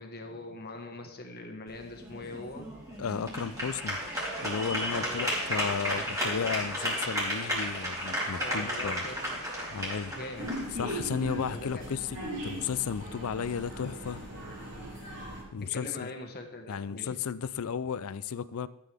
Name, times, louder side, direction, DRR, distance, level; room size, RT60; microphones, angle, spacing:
voice 1, 0.0-2.7 4.9-5.3 5.9-6.6 6.8-7.3 8.4-10.5 11.5-11.9 15.7-17.1, left 2 dB, 45° left, 1.5 m, -42 dB
sound 1, 1.7-11.8, equal, 15° right, 3.5 m, -34 dB
voice 2, 3.0-4.0 4.4-9.0 9.7-10.1 10.8-12.1 12.4-14.2 15.5-16.1 16.7-18.7, left 6 dB, 70° left, 0.4 m, -34 dB
sound 2, 10.4-15.4, right 1 dB, 55° right, 4.2 m, -39 dB
13.0 x 8.4 x 3.5 m
head